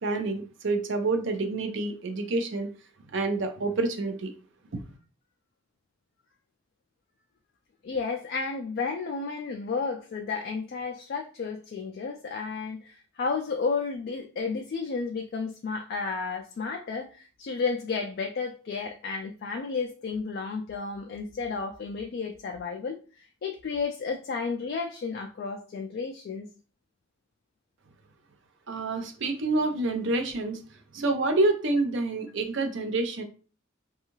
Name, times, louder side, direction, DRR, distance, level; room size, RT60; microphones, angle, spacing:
voice 1, 0.0-2.7 3.1-4.3 4.7-4.8 28.7-30.6 30.9-33.2, right 2 dB, 65° right, 0.5 m, -27 dB
voice 2, 7.8-26.5, left 4 dB, 50° left, 0.3 m, -32 dB
2.6 x 2.3 x 2.9 m
head